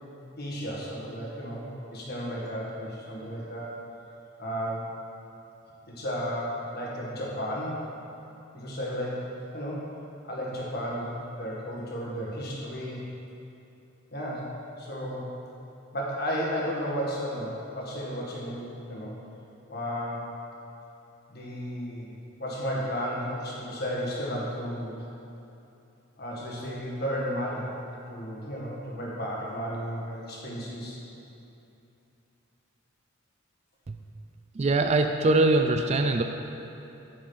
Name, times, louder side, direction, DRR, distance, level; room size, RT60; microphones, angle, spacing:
voice 1, 0.4-3.8 4.4-4.9 5.9-7.9 8.5-9.3 9.5-9.9 10.2-13.0 14.1-14.5 14.8-15.2 15.9-19.1 19.7-20.3 21.3-22.1 22.4-25.0 26.2-27.7 28.1-31.0, equal, 50° left, -4 dB, 1.6 m, -33 dB
voice 2, 34.6-36.2, right 2 dB, 30° right, 6 dB, 0.3 m, -22 dB
8.9 x 5.1 x 5.6 m, 2.9 s
head